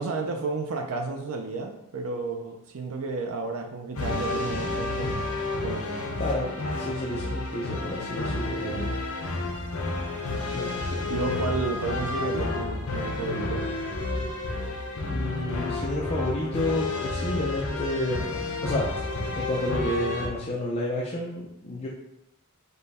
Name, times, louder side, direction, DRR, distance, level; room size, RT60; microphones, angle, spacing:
voice 1, 0.0-5.3 5.6-6.1 8.6-8.9 11.1-13.7, right 3 dB, 70° right, 3 dB, 0.5 m, -32 dB
sound 1, 3.9-20.3, left 2 dB, 70° left, 0.7 m, -30 dB
voice 2, 5.8-9.0 10.5-11.2 15.1-18.9 19.3-21.9, left 1 dB, 30° left, -4 dB, 0.5 m, -31 dB
5.3 x 2.2 x 4.1 m, 0.85 s
head